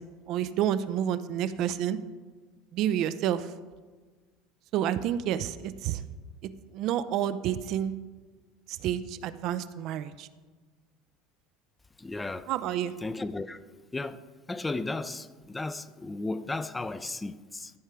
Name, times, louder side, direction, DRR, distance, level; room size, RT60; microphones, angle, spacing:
voice 1, 0.0-2.0 2.7-3.5 4.7-6.0 6.4-7.9 8.7-10.3 12.5-12.9, right 10 dB, 55° right, 0.4 m, -29 dB
voice 2, 12.0-12.5 13.0-13.6 13.9-14.2 14.5-17.7, left 2 dB, 15° left, 0.5 m, -34 dB
14.0 x 5.5 x 4.7 m
figure-of-eight pair, 70°, 0 cm